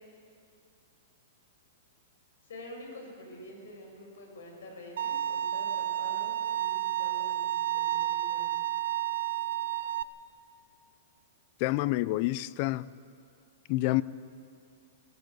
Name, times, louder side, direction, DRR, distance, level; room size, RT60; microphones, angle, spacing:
voice 1, 2.4-8.5, left 1 dB, 85° left, 1 dB, 6.6 m, -47 dB
Bowed string instrument, 5.0-10.0, right 13 dB, 70° right, 0.6 m, -31 dB
voice 2, 11.6-12.9 13.7-14.0, left 18 dB, 35° left, 19 dB, 0.4 m, -28 dB
18.5 x 18.5 x 7.9 m, 2.4 s
supercardioid pair, 170°, 0 cm